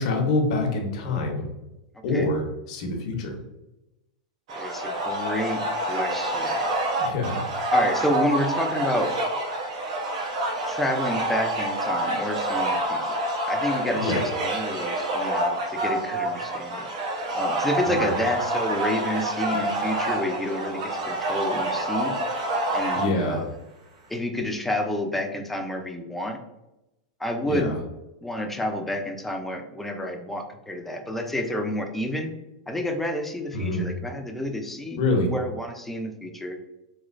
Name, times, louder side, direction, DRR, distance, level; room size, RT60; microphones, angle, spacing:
voice 1, 0.0-1.5 2.0-3.4 7.0-7.5 14.0-14.2 18.0-18.1 22.9-23.5 27.5-27.8 33.5-33.9 35.0-35.3, left 2 dB, 65° left, 2 dB, 0.9 m, -26 dB
voice 2, 4.5-5.6 5.9-6.5 7.7-9.1 10.7-13.1 13.5-16.9 17.3-22.2 22.7-23.5 24.1-26.4 27.2-27.7 28.2-32.3 32.7-36.6, left 1 dB, 5° left, 3 dB, 0.4 m, -29 dB
sound 1, 4.5-23.0, right 1 dB, 75° right, 0.9 m, -27 dB
3.1 x 2.9 x 2.5 m, 0.94 s
hypercardioid pair, 125°, 4 cm